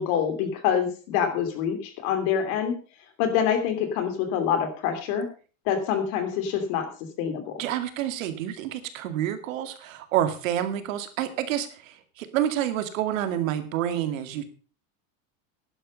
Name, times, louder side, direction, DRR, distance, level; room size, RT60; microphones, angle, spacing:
voice 1, 0.0-2.7 3.2-5.3 5.7-6.9 7.2-7.6, left 8 dB, 45° left, 7 dB, 3.0 m, -26 dB
voice 2, 7.6-14.4, right 11 dB, 80° right, 9 dB, 2.4 m, -28 dB
11.0 x 11.0 x 5.3 m, 0.38 s
supercardioid pair, 180°, 39 cm